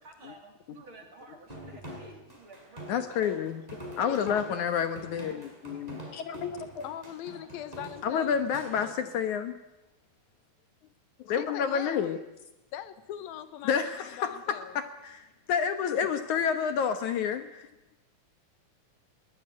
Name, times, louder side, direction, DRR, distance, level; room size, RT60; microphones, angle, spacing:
voice 1, 0.0-3.4 5.3-5.4 11.3-12.2 16.2-16.4, right 3 dB, 40° right, 3.1 m, -51 dB
sound 1, 1.5-8.9, right 1 dB, 10° right, 6.3 m, -45 dB
voice 2, 2.9-3.6 4.0-6.8 8.0-9.6 11.2-12.2 13.6-17.7, left 7 dB, 65° left, 2.3 m, -29 dB
voice 3, 4.0-4.8 6.8-8.9 11.4-12.2 12.7-14.7, left 10 dB, 85° left, 3.0 m, -41 dB
21.0 x 19.0 x 9.7 m
omnidirectional pair, 4.1 m